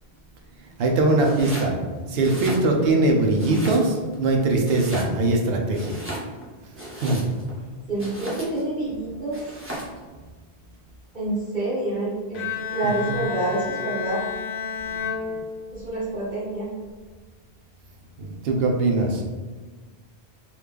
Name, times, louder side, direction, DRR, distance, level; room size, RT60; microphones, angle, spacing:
voice 1, 0.8-1.8 2.1-6.0 7.0-7.2 12.8-13.2 14.9-15.0 15.2-15.3 18.2-19.2, right 2 dB, 70° right, 1 dB, 0.8 m, -22 dB
Domestic sounds home sounds, 1.2-1.7 2.1-3.0 3.4-4.2 4.6-5.4 5.7-7.5 8.0-8.7 9.3-10.0, right 1 dB, 15° right, 0.7 m, -35 dB
voice 2, 7.9-9.4 11.1-12.4 12.7-14.2 15.7-16.7, right 2 dB, 45° right, -8 dB, 1.5 m, -27 dB
Bowed string instrument, 12.3-16.1, left 7 dB, 60° left, 0.7 m, -31 dB
3.1 x 2.4 x 3.5 m, 1.3 s
omnidirectional pair, 1.1 m